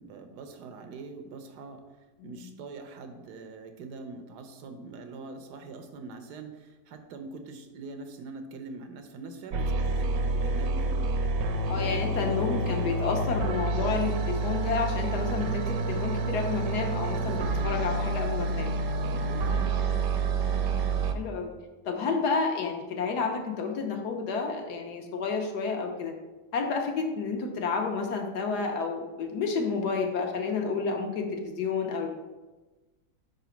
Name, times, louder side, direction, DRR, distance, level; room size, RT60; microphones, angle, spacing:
voice 1, 0.0-1.8 2.2-11.1 11.4-12.9 13.8-14.3 17.1-17.8 19.1-19.7, right 4 dB, 90° right, 6 dB, 1.3 m, -43 dB
sound 1, 9.5-21.1, right 2 dB, 70° right, 1.0 m, -28 dB
voice 2, 11.7-18.7 20.7-20.8 21.1-21.5 21.8-26.1 26.5-32.1, left 4 dB, 80° left, 3 dB, 1.4 m, -30 dB
4.9 x 4.0 x 5.7 m, 1.2 s
omnidirectional pair, 1.7 m